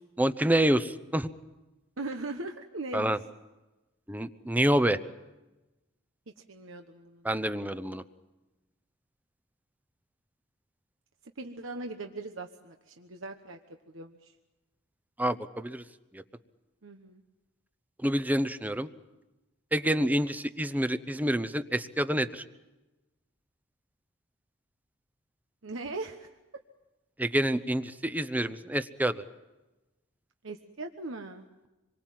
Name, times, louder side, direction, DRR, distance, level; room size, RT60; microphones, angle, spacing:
voice 1, 0.2-1.3 2.9-3.2 4.1-5.0 7.2-8.0 15.2-15.8 16.1-16.2 18.0-18.9 19.7-22.4 27.2-29.2, right 1 dB, 10° right, 12 dB, 0.8 m, -27 dB
voice 2, 2.0-3.1 6.5-7.4 11.4-13.6 13.9-14.3 16.8-17.2 25.6-26.3 30.4-31.5, right 2 dB, 70° right, 5 dB, 1.2 m, -39 dB
26.5 x 23.0 x 7.6 m, 1.1 s
head